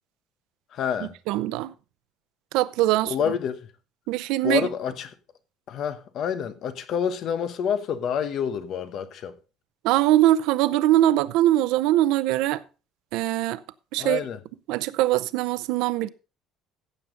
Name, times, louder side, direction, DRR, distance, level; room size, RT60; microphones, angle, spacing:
voice 1, 0.7-1.1 3.1-3.7 4.4-5.1 5.7-9.4 14.0-14.4, left 8 dB, 45° left, 1.0 m, -28 dB
voice 2, 1.3-1.7 2.5-3.1 4.1-4.6 9.8-12.6 13.1-13.6 13.9-14.2 14.7-16.1, right 14 dB, 90° right, 0.6 m, -22 dB
15.5 x 7.1 x 3.8 m
cardioid pair, 175°, 0 cm